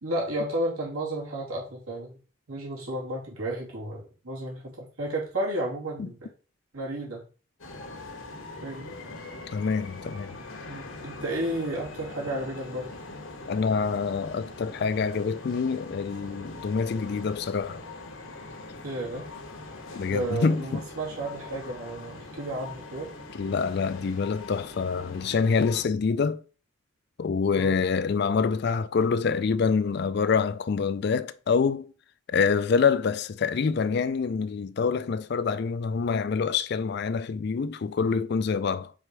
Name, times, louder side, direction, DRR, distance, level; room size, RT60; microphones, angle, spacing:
voice 1, 0.0-2.2 2.5-6.3 6.7-7.3 8.6-9.0 10.7-13.0 18.8-19.3 20.1-23.1 27.6-27.8, right 1 dB, 90° right, 2.6 m, -32 dB
sound 1, 7.6-25.8, left 2 dB, 75° left, 1.2 m, -42 dB
voice 2, 9.5-10.4 13.5-17.8 19.9-20.8 23.3-26.4 27.2-31.9 32.3-38.9, left 5 dB, 50° left, 0.3 m, -26 dB
5.0 x 4.2 x 4.6 m
head